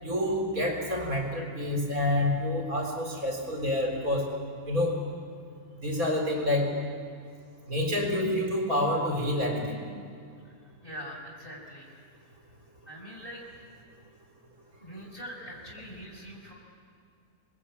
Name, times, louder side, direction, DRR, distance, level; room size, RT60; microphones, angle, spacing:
voice 1, 0.0-4.3 4.7-5.0 5.8-6.7 7.7-9.9, left 1 dB, 60° right, 1 dB, 4.4 m, -28 dB
voice 2, 10.8-12.0 12.9-13.4 14.8-16.5, equal, 35° left, 0 dB, 5.2 m, -43 dB
28.0 x 21.0 x 8.5 m, 2.3 s
omnidirectional pair, 1.7 m